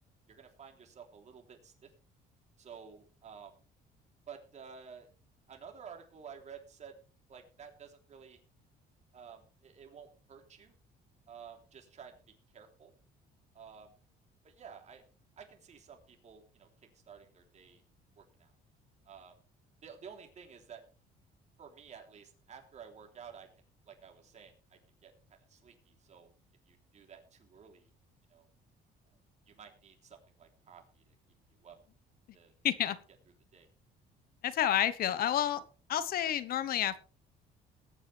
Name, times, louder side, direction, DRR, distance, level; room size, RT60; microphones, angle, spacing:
voice 1, 0.3-1.9 2.6-3.6 4.3-5.1 5.5-6.9 7.3-8.4 9.1-10.7 11.3-12.2 12.5-12.9 13.5-13.9 14.4-15.0 15.4-16.7 17.1-17.8 18.2-18.5 19.0-19.4 19.8-20.8 21.6-26.3 26.7-27.9 28.3-28.5 29.5-31.1 31.6-31.8 32.3-32.5 32.8-32.9 33.5-33.7, right 7 dB, 45° right, 3 dB, 3.4 m, -52 dB
voice 2, 32.6-33.0 34.4-35.6 35.9-37.0, left 11 dB, 60° left, 15 dB, 1.1 m, -29 dB
20.5 x 8.3 x 3.4 m, 0.36 s
cardioid pair, 110°, 17 cm